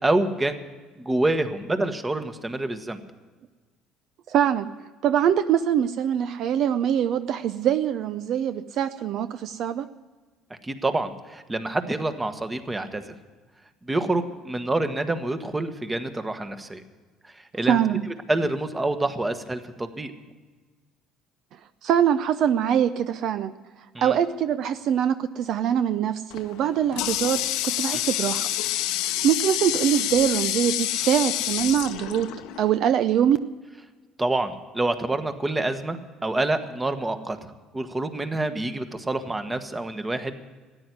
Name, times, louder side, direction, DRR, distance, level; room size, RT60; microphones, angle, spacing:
voice 1, 0.0-0.6 1.0-3.0 10.6-13.1 13.8-16.8 17.5-17.8 18.3-20.1 23.9-24.2 27.9-28.0 34.2-37.4 37.7-40.3, right 2 dB, 15° right, 9 dB, 1.3 m, -27 dB
voice 2, 4.3-4.7 5.0-9.9 17.6-18.0 21.8-23.5 24.0-28.5 29.2-32.3 32.6-33.4, right 9 dB, 65° right, 12 dB, 0.5 m, -23 dB
Water tap faucet, 26.3-32.8, left 13 dB, 80° left, 0.8 m, -28 dB
13.5 x 9.8 x 9.3 m, 1.4 s
supercardioid pair, 90°, 0 cm